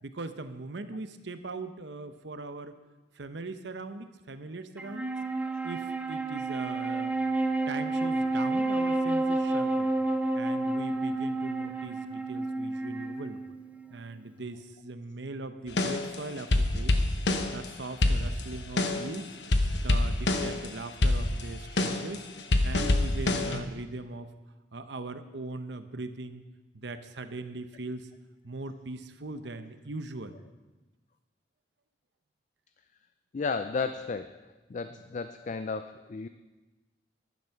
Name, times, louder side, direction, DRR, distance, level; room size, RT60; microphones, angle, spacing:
voice 1, 0.0-2.7 3.2-5.1 5.6-7.1 7.7-9.9 10.3-13.4 13.9-17.0 17.5-19.4 19.8-22.2 22.6-24.3 24.7-26.4 26.7-28.1 28.4-30.3, right 2 dB, 70° right, 10 dB, 0.9 m, -40 dB
Wind instrument woodwind instrument, 4.8-14.3, right 2 dB, 10° right, 0.7 m, -30 dB
sound 1, 15.7-17.7 18.0-19.2 19.4-20.7 21.0-23.6, left 2 dB, 70° left, 1.0 m, -26 dB
voice 2, 33.3-34.3 34.7-36.3, left 4 dB, 40° left, 10 dB, 0.4 m, -33 dB
11.0 x 10.5 x 5.8 m, 1.2 s
head